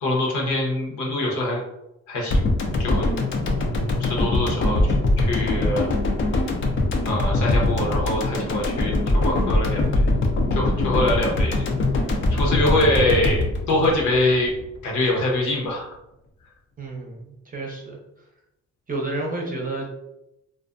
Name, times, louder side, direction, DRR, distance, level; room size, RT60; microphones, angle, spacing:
voice 1, 0.0-1.6 2.1-2.4 2.8-3.1 4.0-5.9 7.1-10.0 10.5-11.7 12.3-14.5 14.8-16.0, left 1 dB, 75° left, -1 dB, 0.9 m, -24 dB
sound 1, 2.3-14.6 14.9-15.0, left 2 dB, 40° left, 0.5 m, -22 dB
voice 2, 16.8-18.0 18.9-19.9, right 2 dB, 30° right, 0 dB, 0.6 m, -30 dB
2.4 x 2.1 x 2.4 m, 0.87 s
cardioid pair, 90°, 30 cm